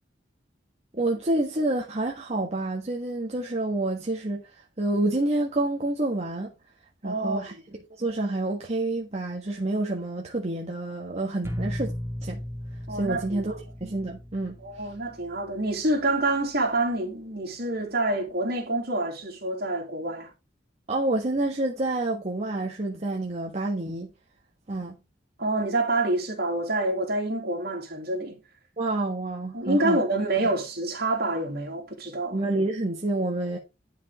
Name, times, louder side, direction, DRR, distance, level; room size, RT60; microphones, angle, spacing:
voice 1, 0.9-6.5 7.0-7.5 7.9-11.9 12.2-12.4 12.9-13.5 13.8-14.9 20.9-24.1 24.7-24.9 28.8-30.0 32.3-33.6, right 2 dB, 35° right, 1.5 m, -28 dB
voice 2, 7.0-7.6 12.9-13.4 14.6-20.3 25.4-28.4 29.5-32.4, right 2 dB, 55° right, 3.0 m, -27 dB
sound 1, 11.4-17.2, equal, 15° right, 2.1 m, -38 dB
11.0 x 5.1 x 3.6 m
head